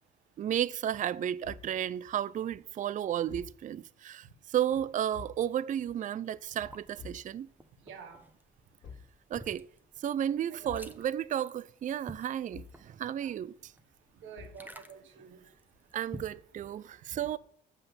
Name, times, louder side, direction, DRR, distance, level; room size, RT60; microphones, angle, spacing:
voice 1, 0.4-7.5 9.3-9.6 10.0-13.7 15.9-17.4, right 10 dB, 40° right, 0.4 m, -33 dB
Thump thud, 1.4-1.8 3.3-3.6 5.1-5.5 7.0-7.3 8.8-9.2 10.7-11.0 12.5-12.9 14.4-14.7, left 6 dB, 75° left, 2.0 m, -47 dB
sound 1, 6.5-16.4, right 1 dB, 10° right, 0.8 m, -52 dB
voice 2, 7.9-8.2 10.5-10.9 13.2-13.3 14.2-15.4, right 6 dB, 80° right, 1.4 m, -48 dB
7.6 x 5.8 x 6.9 m
cardioid pair, 90°, 20 cm